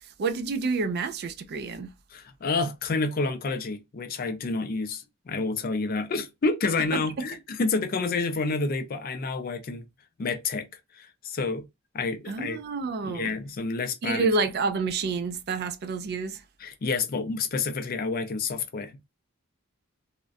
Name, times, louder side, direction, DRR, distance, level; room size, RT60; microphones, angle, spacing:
voice 1, 0.2-1.9 6.9-7.3 12.3-13.3 14.0-16.4, right 4 dB, 50° right, 0.3 m, -29 dB
voice 2, 2.1-9.9 10.2-10.7 10.9-11.6 11.9-12.6 13.0-14.3 16.6-19.0, left 3 dB, 45° left, 0.4 m, -29 dB
2.3 x 2.1 x 2.5 m
head